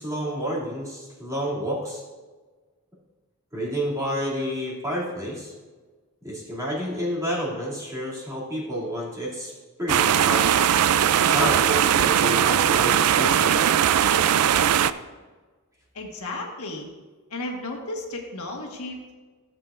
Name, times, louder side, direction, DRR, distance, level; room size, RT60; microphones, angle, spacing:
voice 1, 0.0-2.0 3.5-5.5 6.2-9.5 9.8-10.5 11.3-13.6, equal, 15° right, -6 dB, 2.4 m, -29 dB
sound 1, 9.9-14.9, right 9 dB, 85° right, 0.4 m, -19 dB
voice 2, 15.9-16.9 17.3-19.1, left 2 dB, 75° left, 1 dB, 1.4 m, -34 dB
15.0 x 7.6 x 2.5 m, 1.3 s
head